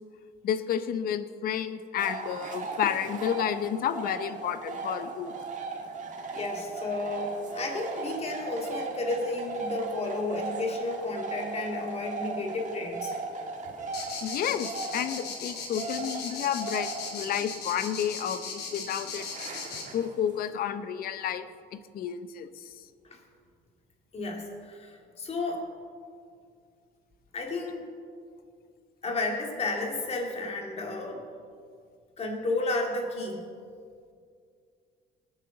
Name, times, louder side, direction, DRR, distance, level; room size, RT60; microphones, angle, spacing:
voice 1, 0.4-5.3 14.2-19.3 19.9-21.5 21.9-22.7, left 9 dB, 60° left, 12 dB, 0.7 m, -31 dB
sound 1, 2.0-20.5, right 4 dB, 45° right, 1.8 m, -38 dB
voice 2, 6.3-13.1 23.1-23.2 24.1-25.6 27.3-27.9 29.0-31.2 32.2-33.4, left 2 dB, 40° left, 1 dB, 2.5 m, -32 dB
sound 2, 13.9-19.8, left 5 dB, 75° left, 2.8 m, -37 dB
20.0 x 9.1 x 4.0 m, 2.3 s
cardioid pair, 110°, 17 cm